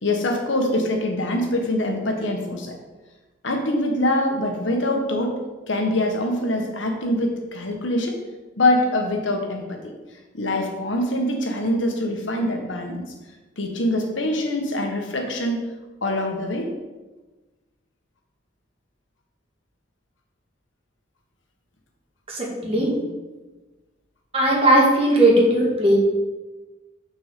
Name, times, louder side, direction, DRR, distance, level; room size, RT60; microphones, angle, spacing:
voice 1, 0.0-2.8 3.4-5.4 5.6-8.2 8.6-9.9 10.3-13.0 13.6-15.7 16.0-16.7, left 1 dB, 85° left, 3 dB, 1.3 m, -24 dB
voice 2, 22.3-22.9 24.3-26.0, right 1 dB, 30° right, -3 dB, 1.9 m, -18 dB
6.3 x 4.5 x 6.7 m, 1.2 s
head